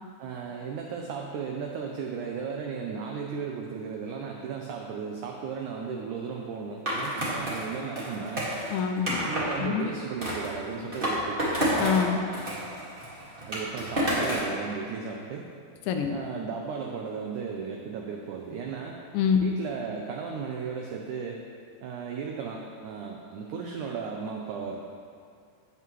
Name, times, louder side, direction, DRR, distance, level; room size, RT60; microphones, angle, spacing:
voice 1, 0.2-8.5 9.3-11.6 13.5-15.5 16.1-19.0 19.4-21.4 21.8-24.8, right 6 dB, 90° right, 1 dB, 1.7 m, -35 dB
Skateboard, 6.9-9.6 10.2-12.0 12.3-14.5, equal, 35° right, 0.8 m, -29 dB
voice 2, 8.7-9.3 9.6-9.9 11.8-12.2 15.9-16.2 19.1-19.5, left 7 dB, 80° left, 4 dB, 2.2 m, -25 dB
16.5 x 5.8 x 3.1 m, 2.3 s
omnidirectional pair, 4.3 m